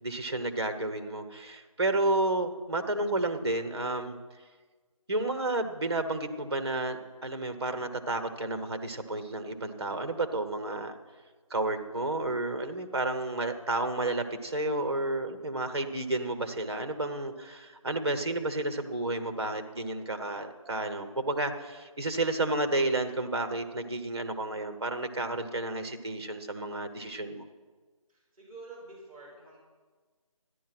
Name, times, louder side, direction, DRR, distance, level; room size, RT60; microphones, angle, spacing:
voice 1, 0.0-4.2 5.1-11.0 11.5-27.4, right 2 dB, 45° right, 8 dB, 1.2 m, -31 dB
voice 2, 28.1-29.6, right 3 dB, 10° right, -14 dB, 5.1 m, -48 dB
13.0 x 11.0 x 6.0 m, 1.4 s
figure-of-eight pair, 175°, 18 cm